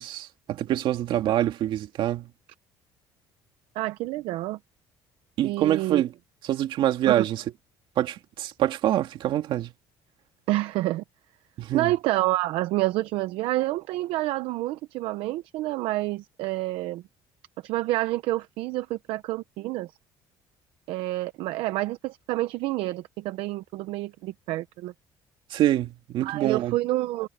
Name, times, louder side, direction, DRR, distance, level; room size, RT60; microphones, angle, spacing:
voice 1, 0.0-2.3 5.4-6.1 6.4-7.4 8.0-9.7 11.6-11.9 25.5-26.8, right 12 dB, 65° right, 2.5 m, -25 dB
voice 2, 3.7-4.6 5.4-6.0 7.1-7.2 10.5-11.0 11.7-17.0 17.6-19.9 20.9-24.9 26.2-27.3, right 17 dB, 80° right, 0.7 m, -28 dB
cardioid pair, 130°, 9 cm